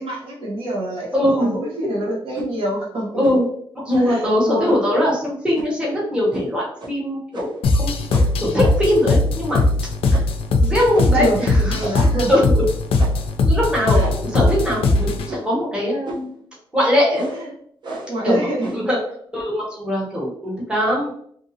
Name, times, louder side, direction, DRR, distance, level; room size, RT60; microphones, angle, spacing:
voice 1, 0.0-3.2 4.0-4.8 11.1-12.3 13.9-14.1 17.3-17.5 18.1-18.7, right 1 dB, 70° right, -4 dB, 1.0 m, -26 dB
voice 2, 1.1-1.5 3.2-3.5 3.8-7.5 7.8-7.9 8.4-9.6 10.1-10.2 10.5-11.9 12.3-12.4 13.4-16.3 16.7-17.3 18.2-18.5 18.7-19.0 19.3-21.1, left 1 dB, 10° right, -5 dB, 0.9 m, -21 dB
sound 1, 2.3-2.5 3.2-3.5 3.9-4.2 4.7-4.8 5.5-5.8 6.3-6.5 6.8-6.9 7.3-7.7 8.1-9.0 9.5-9.8 10.1-10.4 10.9-11.2 11.8-12.2 13.0-13.3 14.0-14.4 15.3-15.6 16.0-16.3 17.1-17.4 17.8-18.2 18.6-18.9, right 1 dB, 55° right, 0.6 m, -33 dB
sound 2, 7.6-15.3, left 2 dB, 80° left, 0.4 m, -19 dB
2.7 x 2.6 x 2.7 m, 0.63 s
wide cardioid pair, 170°, 10 cm